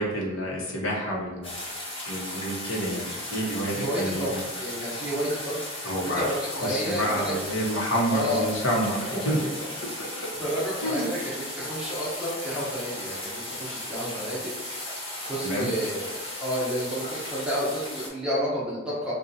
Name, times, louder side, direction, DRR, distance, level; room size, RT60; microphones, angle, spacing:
voice 1, 0.0-1.5 2.1-4.4 5.8-6.3 6.6-9.0 9.2-9.4 10.0-10.3 10.8-11.0 15.4-15.7, equal, 65° left, -2 dB, 0.9 m, -28 dB
sound 1, 1.4-18.1, left 1 dB, 25° left, 1.0 m, -36 dB
voice 2, 3.7-7.3 8.1-8.5 9.6-9.7 10.4-14.5 14.9-19.1, equal, 5° right, -8 dB, 0.8 m, -31 dB
3.9 x 2.3 x 2.7 m, 1.2 s
head